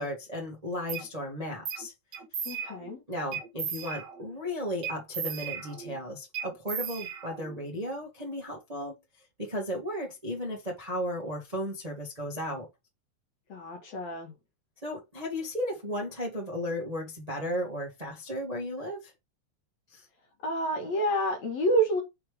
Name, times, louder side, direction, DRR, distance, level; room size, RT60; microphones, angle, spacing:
voice 1, 0.0-1.9 3.1-12.7 14.8-19.1 19.9-20.0, equal, 30° right, 0.7 m, -35 dB
sound 1, 0.9-1.1 1.7-1.9 2.1-2.9 3.3-4.3 4.8-6.0 6.3-7.6, right 7 dB, 65° right, 1.0 m, -36 dB
voice 2, 2.5-3.0 13.5-14.3 20.4-22.0, right 1 dB, 60° left, 2.1 m, -28 dB
5.9 x 3.3 x 5.0 m
omnidirectional pair, 4.1 m